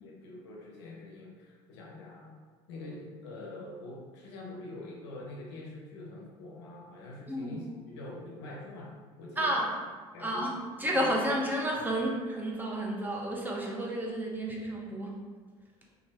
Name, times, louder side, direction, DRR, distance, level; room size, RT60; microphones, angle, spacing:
voice 1, 0.0-2.4 2.7-9.7 10.1-11.1, left 2 dB, 85° left, -2 dB, 0.6 m, -45 dB
voice 2, 7.3-7.7 9.4-9.7 10.2-15.2, right 1 dB, 15° right, -2 dB, 0.9 m, -31 dB
2.9 x 2.5 x 4.1 m, 1.5 s
hypercardioid pair, 75°, 14 cm